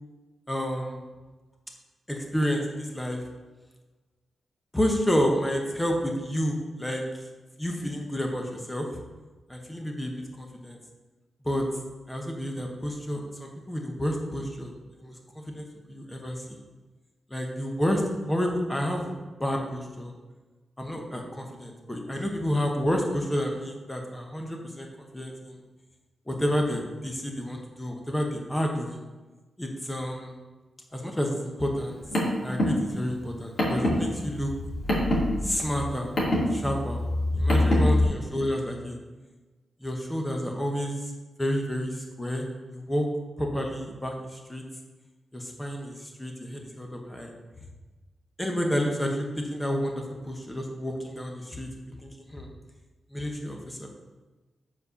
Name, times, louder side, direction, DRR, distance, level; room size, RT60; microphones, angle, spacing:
voice 1, 0.5-1.0 2.1-3.2 4.7-7.0 7.6-8.9 9.5-10.8 11.4-11.6 12.1-16.6 17.3-18.0 18.3-19.1 19.4-20.1 20.8-24.9 25.1-25.6 26.3-29.0 29.6-30.3 30.9-32.0 32.4-34.5 35.4-36.1 36.5-37.0 37.4-39.0 39.8-40.9 41.4-43.1 43.4-44.6 45.3-47.3 48.4-52.5 53.1-53.9, equal, 10° left, 1 dB, 1.0 m, -30 dB
Car, 31.8-38.0, left 1 dB, 40° left, 2.3 m, -25 dB
7.5 x 4.3 x 6.8 m, 1.2 s
wide cardioid pair, 180°, 0 cm